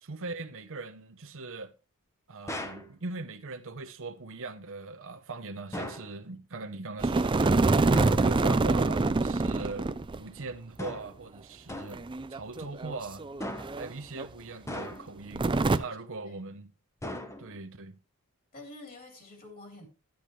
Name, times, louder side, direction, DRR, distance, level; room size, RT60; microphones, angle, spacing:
voice 1, 0.0-1.7 2.3-9.9 10.2-12.0 12.3-13.2 13.8-15.5 15.7-16.7 17.4-18.0, right 3 dB, 60° right, 0.9 m, -40 dB
sound 1, 2.5-2.9 5.7-6.1 7.9-8.3 10.8-11.2 11.7-12.1 13.4-13.9 14.7-15.3 17.0-17.7, left 1 dB, 15° left, 0.9 m, -38 dB
sound 2, 7.0-10.2 10.5-10.6 11.9-13.9 14.2-14.3 15.4-15.8, right 3 dB, 20° right, 0.4 m, -25 dB
voice 2, 16.2-16.5 18.5-19.9, left 2 dB, 40° left, 3.6 m, -48 dB
10.5 x 10.5 x 3.2 m
head